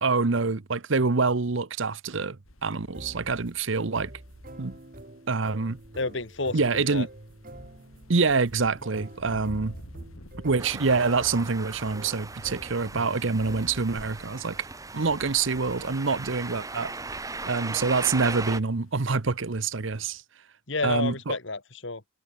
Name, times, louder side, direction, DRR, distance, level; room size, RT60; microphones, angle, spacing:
voice 1, 0.0-4.1 4.6-4.8 5.3-5.8 6.5-7.1 8.1-9.7 10.4-14.7 14.9-16.9 17.5-20.2 20.8-21.4, right 4 dB, 70° right, 0.9 m, -26 dB
sound 1, 2.4-20.2, equal, 85° left, 6.7 m, -51 dB
sound 2, 2.9-14.1, right 1 dB, 40° right, 2.3 m, -46 dB
voice 2, 6.0-7.1 20.7-22.0, left 3 dB, 65° left, 2.2 m, -30 dB
sound 3, 10.6-18.6, right 3 dB, 15° right, 1.0 m, -38 dB
head